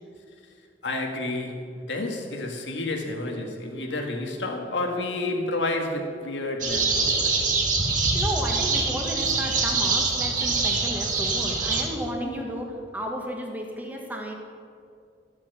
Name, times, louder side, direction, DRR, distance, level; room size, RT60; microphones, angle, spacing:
voice 1, 0.8-7.6, left 2 dB, 85° left, 2 dB, 1.8 m, -30 dB
sound 1, 6.6-11.8, right 4 dB, 45° right, 1.7 m, -24 dB
voice 2, 8.1-14.3, equal, 10° right, 1 dB, 1.6 m, -33 dB
13.0 x 7.4 x 7.0 m, 2.4 s
head